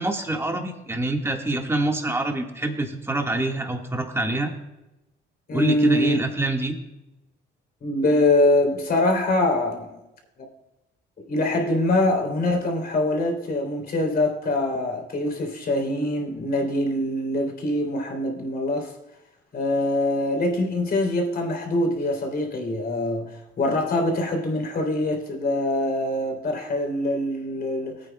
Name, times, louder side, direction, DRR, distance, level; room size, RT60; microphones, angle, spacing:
voice 1, 0.0-4.5 5.5-6.7, right 2 dB, 10° right, 1.7 m, -25 dB
voice 2, 5.5-6.2 7.8-9.9 11.3-18.9 19.5-28.1, left 1 dB, 50° left, 3.2 m, -24 dB
19.0 x 8.9 x 2.3 m
cardioid pair, 90°, 20 cm